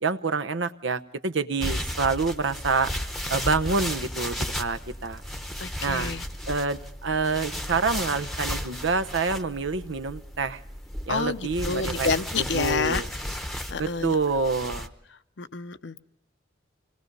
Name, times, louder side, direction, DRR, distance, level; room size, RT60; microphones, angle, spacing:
voice 1, 0.0-2.9 3.3-5.2 5.8-6.1 6.5-10.6 11.1-12.1 12.4-13.1 13.8-14.9, right 4 dB, 80° right, 9 dB, 0.9 m, -27 dB
sound 1, 1.6-14.9, equal, ahead, 0.9 m, -34 dB
voice 2, 5.6-6.2 11.1-13.0 13.7-14.1 15.4-16.0, left 5 dB, 65° left, 12 dB, 0.7 m, -29 dB
26.0 x 19.5 x 5.4 m, 0.81 s
head